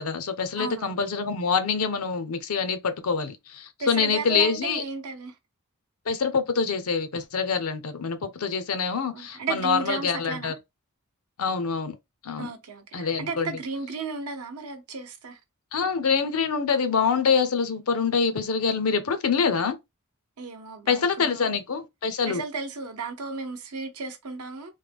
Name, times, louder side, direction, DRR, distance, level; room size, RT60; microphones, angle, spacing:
voice 1, 0.0-4.8 6.1-10.6 11.4-11.9 12.2-12.5 12.9-13.6 15.7-19.8 20.9-22.4, left 5 dB, 75° left, 0.6 m, -25 dB
voice 2, 0.6-1.0 3.8-5.4 9.1-10.6 12.4-15.4 20.4-21.5 22.2-24.7, right 4 dB, 85° right, 0.8 m, -34 dB
3.2 x 2.2 x 3.4 m
head